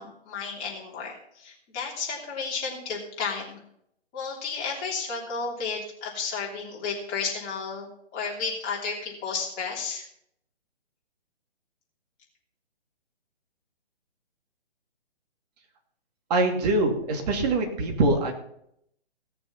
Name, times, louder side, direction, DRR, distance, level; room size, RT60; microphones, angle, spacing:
voice 1, 0.0-3.6 4.1-10.1, left 5 dB, 25° left, -3 dB, 3.3 m, -32 dB
voice 2, 16.3-18.3, right 2 dB, 35° right, 3 dB, 2.6 m, -23 dB
17.5 x 6.8 x 5.7 m, 0.73 s
hypercardioid pair, 145°, 33 cm